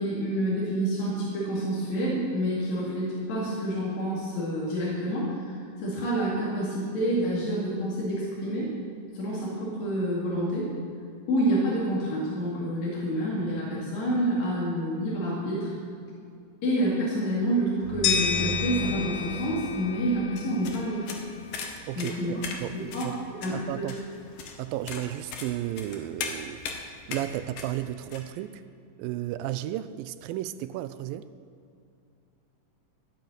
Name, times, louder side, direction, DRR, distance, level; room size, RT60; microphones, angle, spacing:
voice 1, 0.0-8.7 9.1-10.7 11.3-15.7 16.6-21.1 22.0-22.4 22.9-23.1 23.4-23.8, right 1 dB, 55° left, -6 dB, 3.4 m, -28 dB
sound 1, 17.8-21.5, left 2 dB, 5° right, 3.0 m, -38 dB
sound 2, 18.0-21.0, left 7 dB, 90° left, 2.9 m, -30 dB
sound 3, 20.4-28.2, left 5 dB, 75° left, 2.8 m, -39 dB
voice 2, 21.9-23.1 23.5-24.0 24.6-26.6 27.1-28.6 29.0-31.3, right 13 dB, 85° right, 13 dB, 2.3 m, -33 dB
15.0 x 7.3 x 7.9 m, 2.5 s
omnidirectional pair, 4.1 m